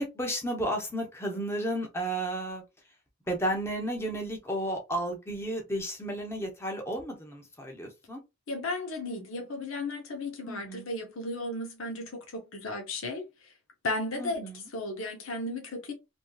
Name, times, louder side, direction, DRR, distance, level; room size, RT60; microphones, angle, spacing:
voice 1, 0.0-2.6 3.3-8.2 10.5-10.9 14.2-14.7, right 1 dB, 15° left, 0.7 m, -33 dB
voice 2, 8.5-13.5 13.8-15.9, left 2 dB, 90° left, 0.8 m, -35 dB
3.0 x 2.6 x 2.3 m
head